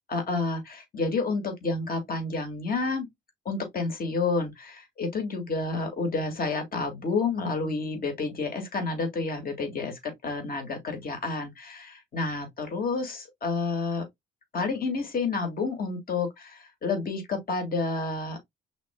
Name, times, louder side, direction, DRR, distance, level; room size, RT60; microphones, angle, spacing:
voice 1, 0.1-3.1 3.5-14.1 14.5-18.4, left 3 dB, 45° left, 2.1 m, -30 dB
5.7 x 3.7 x 2.2 m
cardioid pair, 90°, 20 cm